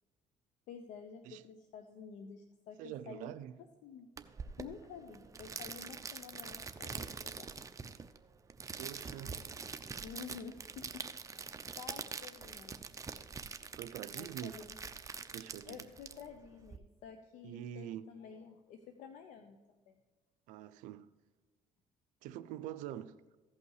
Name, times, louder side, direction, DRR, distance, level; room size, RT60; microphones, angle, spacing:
voice 1, 0.7-3.3 3.8-4.1 4.6-7.5 10.0-11.5 11.8-12.8 14.1-14.8 15.7-20.0, left 6 dB, 75° left, 0.8 m, -50 dB
voice 2, 2.8-3.6 8.8-9.5 13.7-14.6 15.3-15.9 17.4-18.1 20.5-21.1 22.2-23.4, right 11 dB, 85° right, 0.5 m, -45 dB
sound 1, 4.2-16.8, right 5 dB, 25° right, 0.7 m, -45 dB
15.5 x 5.6 x 4.7 m
cardioid pair, 90°, 13 cm